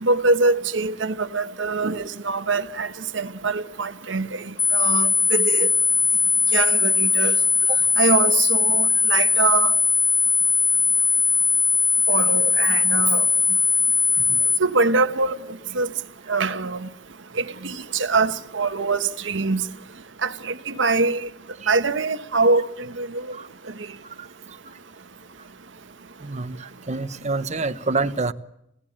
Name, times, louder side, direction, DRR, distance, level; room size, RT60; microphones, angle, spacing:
voice 1, 0.0-4.4 4.7-5.7 6.5-7.3 8.0-9.7 12.1-13.3 14.6-15.4 15.7-15.9 16.3-16.9 17.6-19.7 20.2-21.3 21.7-23.1, right 3 dB, 75° right, 1.3 m, -23 dB
sound 1, 4.6-14.6, left 5 dB, 25° left, 1.4 m, -19 dB
voice 2, 26.2-28.3, right 3 dB, 40° right, 1.1 m, -27 dB
28.5 x 17.5 x 8.8 m
head